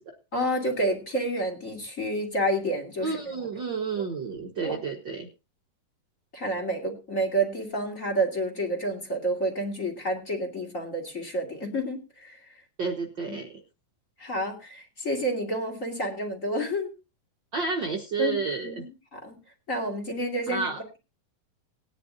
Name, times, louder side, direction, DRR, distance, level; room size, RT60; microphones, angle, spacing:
voice 1, 0.3-3.2 4.0-4.1 4.6-4.8 6.3-12.4 13.3-13.4 14.2-16.9 18.2-18.8 19.1-19.4 19.7-21.0, right 1 dB, 25° left, 4 dB, 2.5 m, -29 dB
voice 2, 3.0-5.3 12.8-13.5 17.5-18.8 20.5-20.8, right 4 dB, 75° right, 2 dB, 1.0 m, -30 dB
20.0 x 10.5 x 2.7 m, 0.30 s
omnidirectional pair, 4.3 m